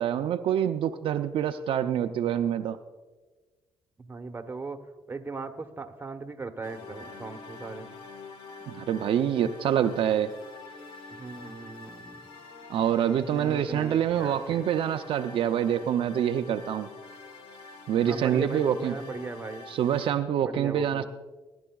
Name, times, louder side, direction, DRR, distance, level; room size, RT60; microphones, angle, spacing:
voice 1, 0.0-2.8 8.7-10.3 12.7-16.9 17.9-18.9 19.7-21.0, right 9 dB, 70° right, 7 dB, 0.5 m, -26 dB
voice 2, 4.0-7.9 11.1-12.2 13.3-14.6 18.0-19.7 20.4-21.0, right 3 dB, 20° right, 5 dB, 1.1 m, -38 dB
sound 1, 6.6-20.1, left 4 dB, 70° left, 1.5 m, -46 dB
21.5 x 11.0 x 2.3 m, 1.3 s
cardioid pair, 95°, 9 cm